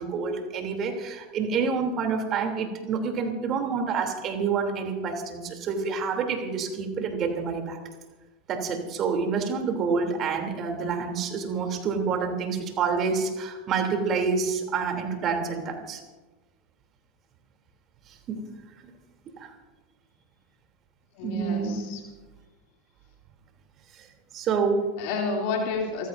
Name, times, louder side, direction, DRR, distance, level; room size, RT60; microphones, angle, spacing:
voice 1, 0.0-7.8 8.5-16.0 18.3-18.4 19.4-19.5 21.2-21.9 24.0-24.1 24.3-25.0, right 5 dB, 40° right, 4 dB, 3.1 m, -28 dB
voice 2, 21.2-22.0 25.0-26.1, left 4 dB, 55° left, 0 dB, 2.9 m, -30 dB
28.5 x 15.0 x 2.7 m, 1.2 s
figure-of-eight pair, 85°, 0 cm